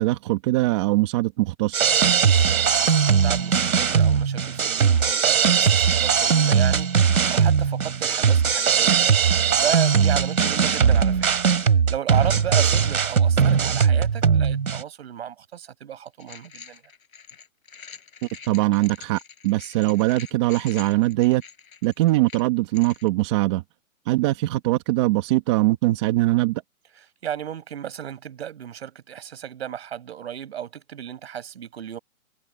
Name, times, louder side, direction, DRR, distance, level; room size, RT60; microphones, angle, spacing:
voice 1, 0.0-1.9 18.2-21.4 21.8-23.6 24.1-26.6, right 18 dB, 20° right, 1.7 m, -22 dB
sound 1, 1.7-14.8, right 7 dB, 85° right, 3.6 m, -19 dB
voice 2, 2.2-11.3 11.6-16.8 27.2-32.0, right 10 dB, 50° right, 5.8 m, -34 dB
sound 2, 16.2-23.1, left 6 dB, 80° left, 7.8 m, -45 dB
hypercardioid pair, 170°, 41 cm